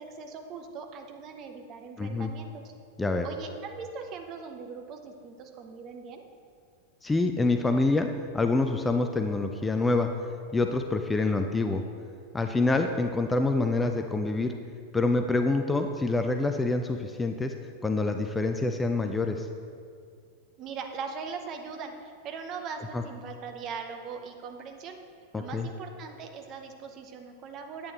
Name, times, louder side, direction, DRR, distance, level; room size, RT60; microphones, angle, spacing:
voice 1, 0.0-2.6 3.2-6.2 20.6-25.0 25.4-27.9, right 5 dB, 35° right, 4 dB, 0.8 m, -40 dB
voice 2, 2.0-2.3 3.0-3.3 7.0-8.1 8.3-10.1 10.5-11.8 12.3-14.5 14.9-17.5 17.8-19.5 22.9-23.0 25.3-25.7, left 3 dB, 10° left, 5 dB, 0.4 m, -26 dB
8.5 x 8.4 x 3.0 m, 2.2 s
figure-of-eight pair, 90°, 0 cm